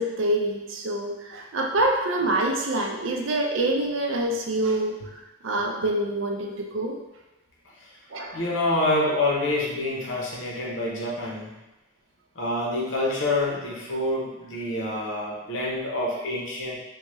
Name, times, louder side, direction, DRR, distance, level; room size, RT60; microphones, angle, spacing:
voice 1, 0.0-7.0 8.1-8.4, right 1 dB, 75° right, 1 dB, 0.5 m, -26 dB
voice 2, 8.3-11.5 12.4-16.8, left 2 dB, 75° left, -4 dB, 0.8 m, -27 dB
3.5 x 2.3 x 3.0 m, 1.0 s
head